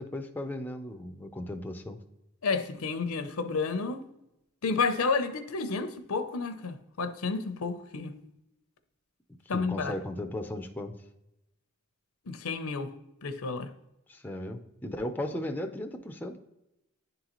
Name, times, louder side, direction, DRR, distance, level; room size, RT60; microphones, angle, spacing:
voice 1, 0.0-2.0 9.5-10.9 14.1-16.4, left 1 dB, 10° left, 0.4 m, -36 dB
voice 2, 2.4-4.0 4.6-8.1 9.5-10.0 12.3-12.9 13.2-13.7, left 4 dB, 80° left, 0.7 m, -31 dB
10.5 x 3.9 x 2.9 m
head